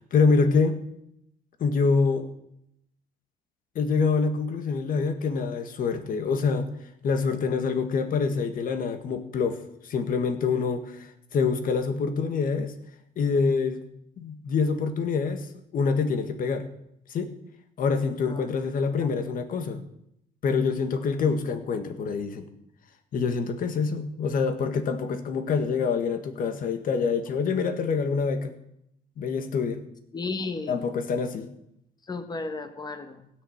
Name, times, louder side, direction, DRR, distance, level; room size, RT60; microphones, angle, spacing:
voice 1, 0.1-0.8 1.6-2.3 3.7-6.7 7.0-9.6 9.8-12.7 13.2-13.8 14.2-15.5 15.7-16.7 17.1-17.3 17.8-19.8 20.4-22.5 23.1-28.5 29.2-29.8 30.7-31.5, left 5 dB, 55° left, 9 dB, 1.7 m, -26 dB
voice 2, 30.1-30.8 32.1-33.3, left 3 dB, 25° left, 8 dB, 1.6 m, -34 dB
16.0 x 6.8 x 8.7 m, 0.77 s
cardioid pair, 110°, 17 cm